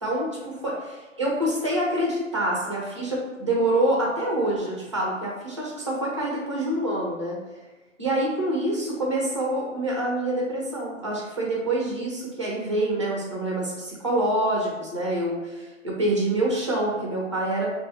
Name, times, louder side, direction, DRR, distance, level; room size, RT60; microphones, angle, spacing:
voice 1, 0.0-7.4 8.0-17.7, right 1 dB, 25° right, -3 dB, 0.4 m, -26 dB
2.5 x 2.3 x 2.9 m, 1.2 s
hypercardioid pair, 155°, 38 cm